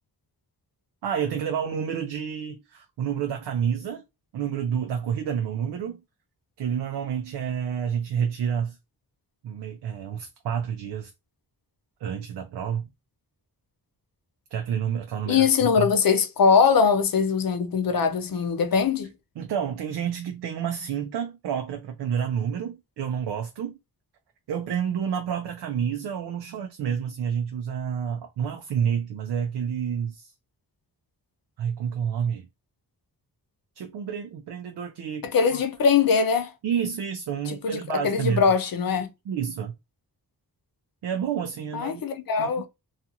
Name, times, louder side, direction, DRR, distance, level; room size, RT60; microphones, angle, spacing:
voice 1, 1.0-4.0 4.3-6.0 6.6-8.8 9.4-11.1 12.0-12.9 14.5-15.9 19.4-23.8 24.5-30.3 31.6-32.5 33.8-35.6 36.6-38.4 39.3-39.7 41.0-42.0 42.4-42.6, right 8 dB, 85° right, 0.5 m, -29 dB
voice 2, 15.3-19.1 35.2-36.5 37.5-39.1 41.7-42.7, left 6 dB, 60° left, 0.6 m, -22 dB
2.4 x 2.4 x 2.7 m
wide cardioid pair, 85°, 39 cm